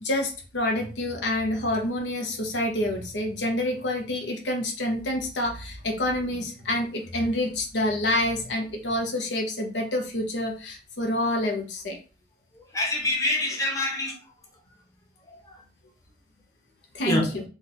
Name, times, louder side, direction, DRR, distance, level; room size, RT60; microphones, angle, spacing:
voice 1, 0.0-12.0 16.9-17.4, left 1 dB, 80° left, 2 dB, 0.9 m, -27 dB
voice 2, 12.6-14.2 15.3-15.5 17.0-17.2, left 1 dB, 20° left, -1 dB, 1.0 m, -26 dB
4.0 x 2.4 x 4.1 m, 0.35 s
head